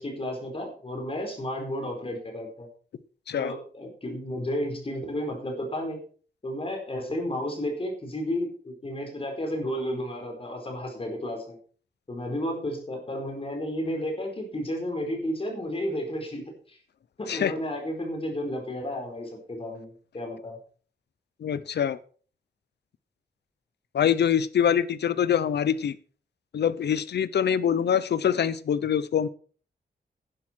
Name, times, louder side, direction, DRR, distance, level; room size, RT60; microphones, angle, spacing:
voice 1, 0.0-2.7 3.4-6.0 6.4-11.6 12.1-16.4 16.7-16.8 17.2-20.6, left 1 dB, 35° left, 2 dB, 4.5 m, -32 dB
voice 2, 21.4-22.0 23.9-26.0 26.5-29.3, left 8 dB, 90° left, 16 dB, 0.8 m, -24 dB
11.0 x 11.0 x 4.5 m, 0.42 s
wide cardioid pair, 115°, 17 cm